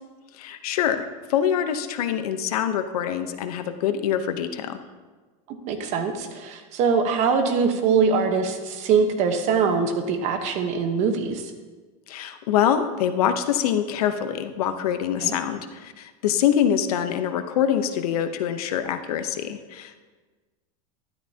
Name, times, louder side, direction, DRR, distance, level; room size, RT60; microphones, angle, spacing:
voice 1, 0.4-4.8 12.1-20.1, left 9 dB, 90° left, 9 dB, 0.9 m, -25 dB
voice 2, 5.7-11.5 15.2-15.3, right 5 dB, 40° right, 6 dB, 1.1 m, -23 dB
12.5 x 12.0 x 2.9 m, 1.3 s
supercardioid pair, 160°, 19 cm